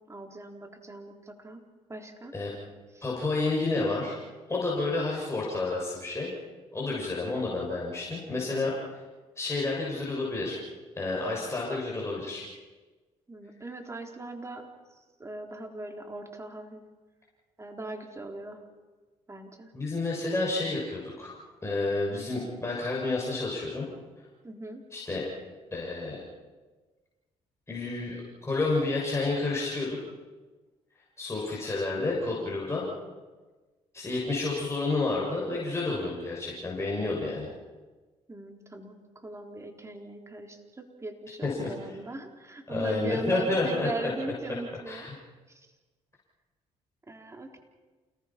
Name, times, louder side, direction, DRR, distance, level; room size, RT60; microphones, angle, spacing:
voice 1, 0.1-1.6 1.9-2.3 2.9-3.1 13.3-14.7 15.2-16.8 17.6-18.6 19.3-19.7 24.4-24.8 38.3-45.1 45.5-45.7 47.1-47.6, right 2 dB, 20° right, 3 dB, 3.9 m, -40 dB
voice 2, 3.0-4.2 4.5-6.3 6.7-8.7 9.4-10.6 11.0-12.4 19.7-21.3 21.6-23.9 24.9-25.2 25.7-26.2 27.7-28.2 28.5-30.0 31.2-32.8 33.9-37.5 41.4-41.7 42.7-43.9 44.9-45.1, left 3 dB, 20° left, -4 dB, 7.1 m, -30 dB
29.0 x 19.0 x 6.0 m, 1.3 s
supercardioid pair, 65°, 13 cm